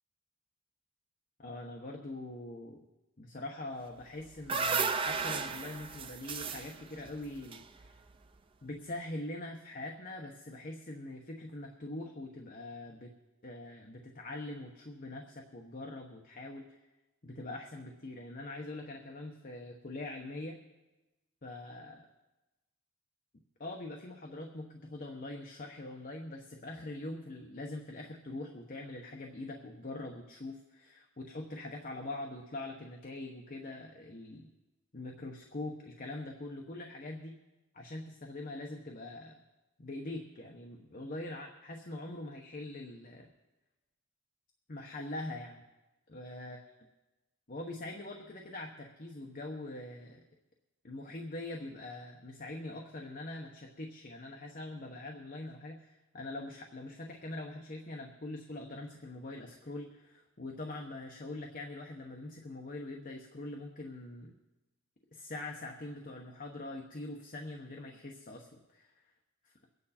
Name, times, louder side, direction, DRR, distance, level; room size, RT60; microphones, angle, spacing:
voice 1, 1.4-2.8 3.2-7.9 8.6-13.1 13.4-16.7 17.2-20.6 21.4-22.1 23.6-34.5 34.9-37.4 37.7-39.4 39.8-43.3 44.7-45.6 46.1-46.7 47.5-50.2 50.8-64.3 65.1-68.9, left 2 dB, 40° left, 2 dB, 1.1 m, -43 dB
sound 1, 4.0-8.3, right 5 dB, 25° right, 0.5 m, -35 dB
23.0 x 9.4 x 4.3 m, 1.1 s
head